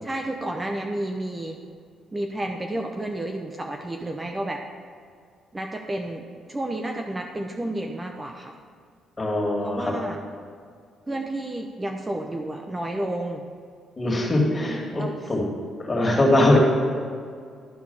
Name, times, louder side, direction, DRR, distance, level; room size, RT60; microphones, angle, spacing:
voice 1, 0.0-1.6 2.1-4.6 5.5-8.5 9.6-10.2 11.1-13.4 15.0-15.3, right 1 dB, 20° right, 2 dB, 0.7 m, -31 dB
voice 2, 9.2-9.9 14.0-15.5 15.8-16.6, left 1 dB, 25° left, -2 dB, 2.4 m, -22 dB
12.0 x 4.6 x 5.5 m, 2.2 s
cardioid pair, 90°, 0 cm